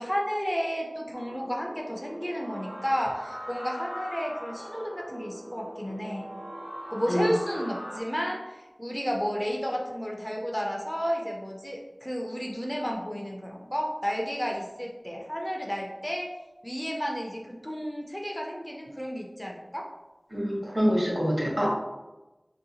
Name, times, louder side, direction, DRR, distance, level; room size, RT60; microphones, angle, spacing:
voice 1, 0.0-6.3 6.9-16.3 16.6-19.9, equal, 10° left, 0 dB, 0.4 m, -32 dB
sound 1, 1.1-8.0, equal, 80° right, 0.9 m, -41 dB
voice 2, 20.3-21.7, equal, 60° right, -4 dB, 1.0 m, -25 dB
2.7 x 2.2 x 2.8 m, 1.0 s
wide cardioid pair, 45°, 0 cm